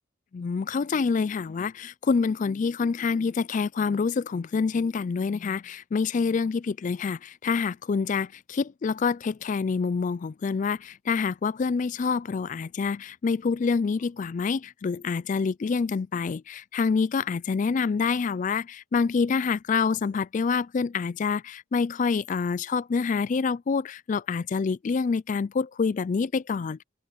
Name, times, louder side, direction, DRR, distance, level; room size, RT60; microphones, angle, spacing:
voice 1, 0.3-26.8, left 5 dB, 40° left, 0.3 m, -27 dB
open air
head